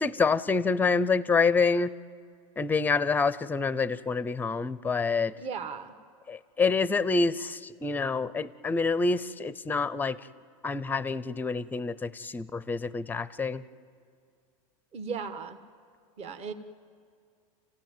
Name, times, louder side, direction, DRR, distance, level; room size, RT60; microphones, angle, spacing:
voice 1, 0.0-1.9 2.6-5.3 6.3-10.2 10.6-13.6, left 4 dB, 10° left, 16 dB, 0.6 m, -27 dB
voice 2, 5.4-5.9 14.9-15.6 16.2-16.5, right 5 dB, 35° right, 8 dB, 1.4 m, -36 dB
29.5 x 16.0 x 9.2 m, 2.2 s
supercardioid pair, 135°, 18 cm